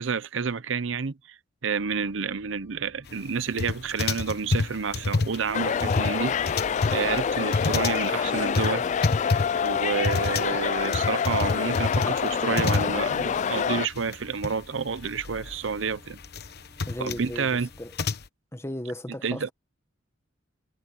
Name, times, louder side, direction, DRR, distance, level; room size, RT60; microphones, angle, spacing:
voice 1, 0.0-1.4 1.6-6.6 6.9-8.9 9.6-16.2 17.0-17.7 19.2-19.5, right 5 dB, 70° right, 0.7 m, -29 dB
sound 1, 1.7-18.0, equal, 15° right, 6.1 m, -56 dB
sound 2, 3.6-13.4 13.6-13.7 13.9-14.5 14.9-18.3, left 3 dB, 55° left, 1.0 m, -28 dB
sound 3, 5.5-13.9, left 7 dB, 40° left, 0.3 m, -26 dB
voice 2, 16.8-17.9 18.5-19.5, left 1 dB, 15° left, 1.3 m, -36 dB
head